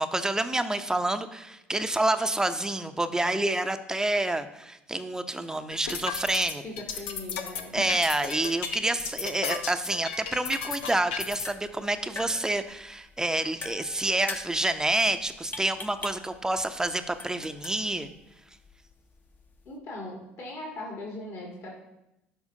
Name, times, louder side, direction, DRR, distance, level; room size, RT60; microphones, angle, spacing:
voice 1, 0.0-6.6 7.7-18.1, right 2 dB, 10° right, 9 dB, 0.6 m, -28 dB
sound 1, 5.7-11.5, left 7 dB, 75° left, 0.7 m, -34 dB
voice 2, 6.6-7.8 19.7-21.7, left 2 dB, 50° left, -2 dB, 1.8 m, -39 dB
sound 2, 11.2-19.8, left 3 dB, 30° left, 0.8 m, -44 dB
11.5 x 4.4 x 2.8 m, 0.90 s
figure-of-eight pair, 60°, 6 cm